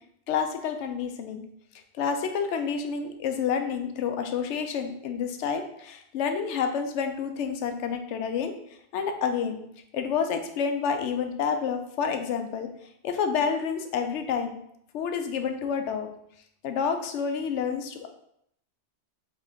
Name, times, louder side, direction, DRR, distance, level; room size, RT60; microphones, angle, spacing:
voice 1, 0.3-1.4 1.9-8.5 8.9-9.6 9.9-12.7 13.0-14.6 14.9-16.1 16.6-18.1, left 6 dB, 80° left, 6 dB, 0.9 m, -29 dB
3.9 x 3.2 x 3.5 m, 0.72 s
omnidirectional pair, 1.2 m